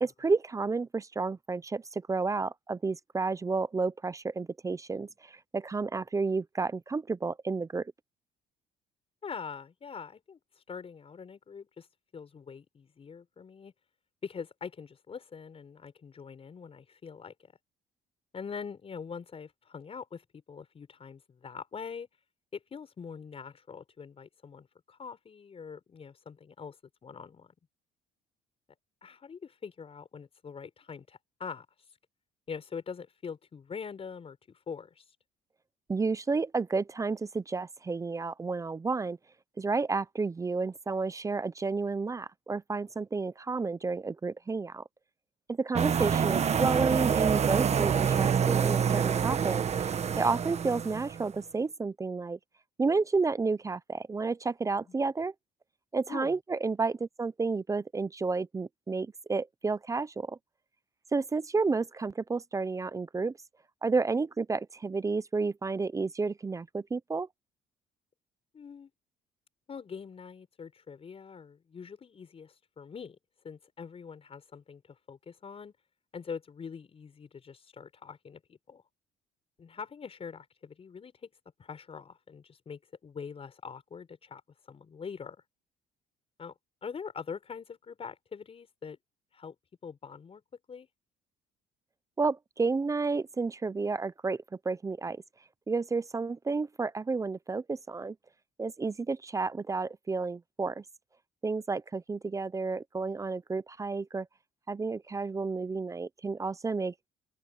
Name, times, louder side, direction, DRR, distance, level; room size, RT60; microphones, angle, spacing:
voice 1, 0.0-7.9 35.9-39.2 39.6-44.8 45.5-49.6 50.2-52.4 52.8-55.3 55.9-60.4 61.1-63.3 63.8-67.3 92.2-95.2 95.7-98.2 98.6-100.8 101.4-104.3 104.7-106.9, right 4 dB, 20° right, 0.5 m, -31 dB
voice 2, 9.2-10.4 10.7-11.9 12.1-13.7 14.2-17.3 18.3-22.1 22.5-26.8 27.0-27.5 29.0-31.7 32.5-35.0 54.8-55.0 56.1-56.4 68.5-68.9 69.7-73.2 73.4-75.7 76.1-78.8 79.6-81.3 81.6-84.4 84.7-85.4 86.4-86.5 86.8-89.0 89.3-89.6 89.8-90.4 90.7-90.9, left 6 dB, 35° left, 5.4 m, -43 dB
sound 1, 45.8-51.3, right 7 dB, 40° right, 1.4 m, -27 dB
cardioid pair, 110°, 17 cm